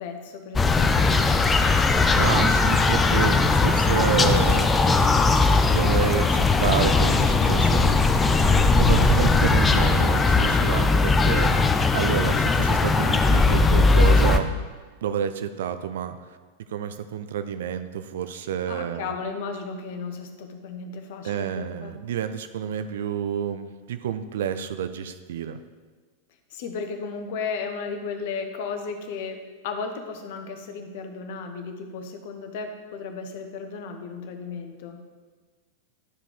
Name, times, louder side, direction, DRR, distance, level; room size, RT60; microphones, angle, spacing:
voice 1, 0.0-1.7 18.7-22.0 26.5-35.0, left 5 dB, 50° left, 6 dB, 1.0 m, -34 dB
sound 1, 0.6-14.4, left 3 dB, 15° left, 0.5 m, -19 dB
voice 2, 2.1-4.9 5.6-8.0 8.8-14.5 15.0-16.2 16.7-19.1 21.2-25.6, right 8 dB, 60° right, 10 dB, 0.5 m, -29 dB
11.0 x 5.0 x 4.9 m, 1.4 s
figure-of-eight pair, 90°, 0 cm